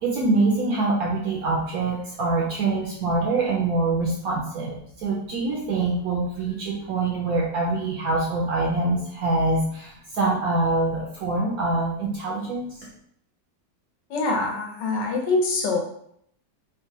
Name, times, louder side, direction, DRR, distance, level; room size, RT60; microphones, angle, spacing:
voice 1, 0.0-12.7, right 3 dB, 70° right, -2 dB, 0.8 m, -24 dB
voice 2, 14.1-15.8, left 3 dB, 75° left, 0 dB, 1.4 m, -24 dB
3.7 x 2.1 x 2.6 m, 0.69 s
omnidirectional pair, 1.9 m